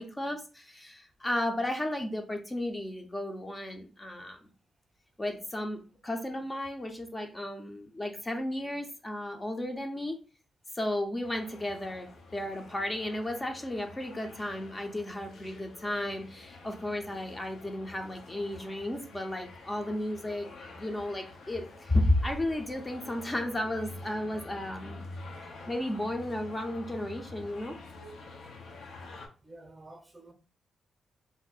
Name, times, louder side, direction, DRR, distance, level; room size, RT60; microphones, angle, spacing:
voice 1, 0.0-4.4 5.2-10.2 10.7-20.5 20.7-25.0 25.4-27.8, left 1 dB, 20° left, 0.5 m, -33 dB
sound 1, 11.2-29.3, left 2 dB, 75° left, 0.7 m, -48 dB
voice 2, 29.4-30.3, right 2 dB, 20° right, 0.7 m, -51 dB
2.6 x 2.0 x 3.9 m
cardioid pair, 80°, 0 cm